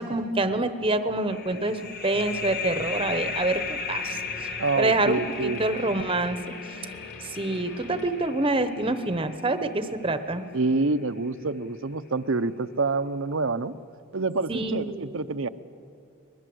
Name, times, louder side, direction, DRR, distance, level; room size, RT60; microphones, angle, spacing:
voice 1, 0.0-6.8 7.2-10.4 14.5-15.3, right 2 dB, 25° right, 10 dB, 0.9 m, -27 dB
sound 1, 1.3-10.6, left 5 dB, 45° left, 1.4 m, -36 dB
sound 2, 3.0-8.1, left 2 dB, 75° left, 4.2 m, -45 dB
voice 2, 4.6-5.6 10.5-13.7 14.1-15.5, right 3 dB, 60° right, 13 dB, 0.7 m, -27 dB
22.5 x 21.0 x 7.9 m, 2.5 s
head